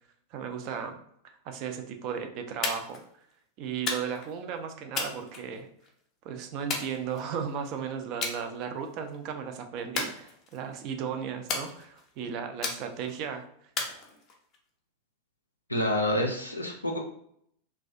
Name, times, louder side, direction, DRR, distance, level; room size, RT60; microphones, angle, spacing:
voice 1, 0.3-1.0 1.2-3.0 3.6-5.7 6.2-13.5, right 7 dB, 40° right, 6 dB, 0.4 m, -35 dB
sound 1, 2.6-3.0 3.9-4.3 4.9-5.9 6.7-7.5 8.2-8.4 8.8-9.2 9.9-10.7 11.5-12.1 12.6-13.2 13.8-14.6, left 4 dB, 30° left, 0.5 m, -34 dB
voice 2, 15.7-17.0, left 1 dB, 85° left, 1 dB, 0.4 m, -28 dB
2.3 x 2.1 x 2.5 m, 0.68 s
figure-of-eight pair, 90°, 0 cm